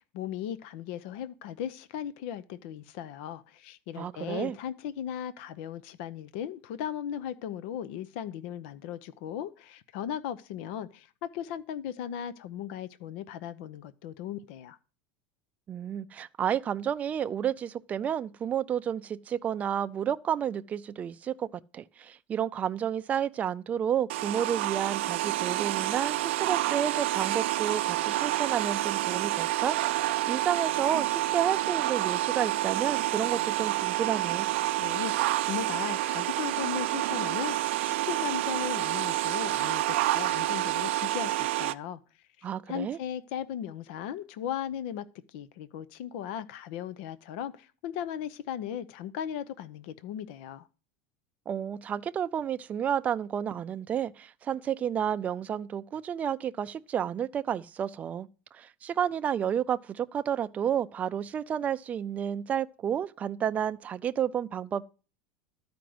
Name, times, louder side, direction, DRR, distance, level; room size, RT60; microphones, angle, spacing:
voice 1, 0.0-14.8 34.8-42.0 42.4-50.7, left 9 dB, 65° left, 0.8 m, -37 dB
voice 2, 4.0-4.6 15.7-34.5 42.4-43.0 51.5-64.8, right 9 dB, 25° right, 0.5 m, -31 dB
sound 1, 24.1-41.7, right 15 dB, 85° right, 0.5 m, -28 dB
12.5 x 5.2 x 7.8 m
supercardioid pair, 150°, 6 cm